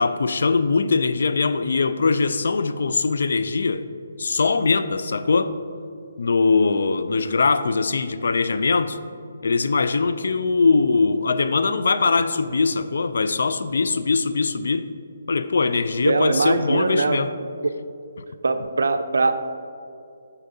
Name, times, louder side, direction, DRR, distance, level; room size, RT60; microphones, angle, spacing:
voice 1, 0.0-3.9 4.2-5.5 6.2-9.0 9.4-14.8 15.3-17.3, left 4 dB, 70° left, 11 dB, 0.3 m, -21 dB
voice 2, 16.1-17.2 18.4-19.3, right 3 dB, 75° right, 9 dB, 0.4 m, -21 dB
7.8 x 5.7 x 2.7 m, 2.5 s
figure-of-eight pair, 150°, 0 cm